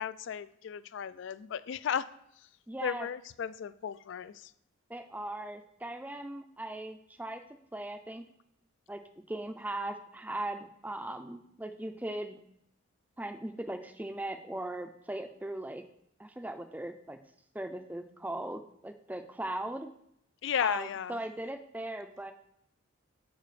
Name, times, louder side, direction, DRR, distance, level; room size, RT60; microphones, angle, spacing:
voice 1, 0.0-2.1 2.8-4.5 20.4-21.2, left 8 dB, 60° left, 17 dB, 0.3 m, -34 dB
voice 2, 2.7-3.1 4.9-7.4 7.7-8.2 8.9-9.0 9.3-12.4 13.2-15.8 16.2-17.2 17.5-19.9 20.6-22.3, right 1 dB, 10° right, 8 dB, 0.4 m, -39 dB
13.5 x 4.9 x 3.2 m, 0.74 s
head